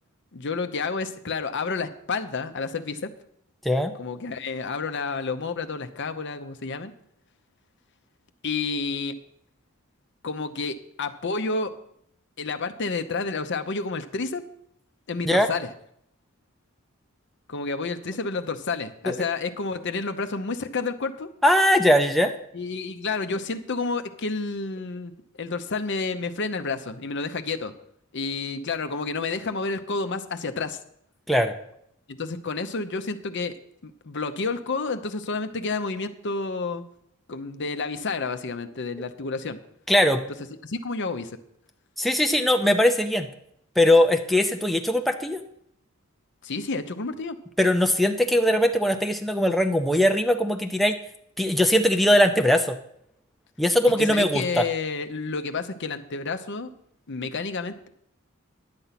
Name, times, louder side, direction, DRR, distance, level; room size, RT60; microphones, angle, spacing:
voice 1, 0.3-3.1 4.0-6.9 8.4-9.2 10.2-11.7 12.4-14.4 15.1-15.7 17.5-21.3 22.5-25.1 25.4-27.7 28.1-30.8 32.1-33.6 33.8-36.8 37.3-39.6 40.6-41.3 46.4-47.4 54.0-56.7 57.1-57.9, left 4 dB, 60° left, 9 dB, 0.8 m, -30 dB
voice 2, 21.4-22.3 31.3-31.5 39.9-40.2 42.0-43.3 43.8-45.4 47.6-51.0 51.4-52.8 53.6-54.7, left 1 dB, ahead, 4 dB, 0.5 m, -20 dB
10.5 x 8.1 x 5.8 m, 0.72 s
head